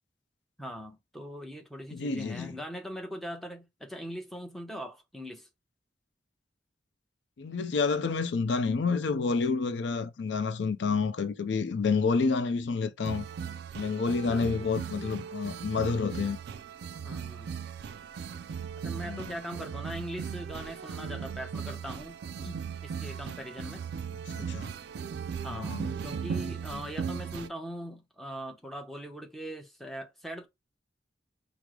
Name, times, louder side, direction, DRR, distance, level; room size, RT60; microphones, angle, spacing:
voice 1, 0.6-5.5 14.3-14.5 17.0-17.6 18.8-23.9 25.4-30.5, equal, ahead, 0.7 m, -41 dB
voice 2, 1.9-2.6 7.4-13.3 13.8-16.4 19.1-19.3 24.3-24.7 25.5-25.9 26.7-26.8, left 4 dB, 75° left, 0.4 m, -29 dB
sound 1, 13.0-27.5, right 6 dB, 65° right, 0.3 m, -38 dB
4.6 x 2.0 x 3.6 m
head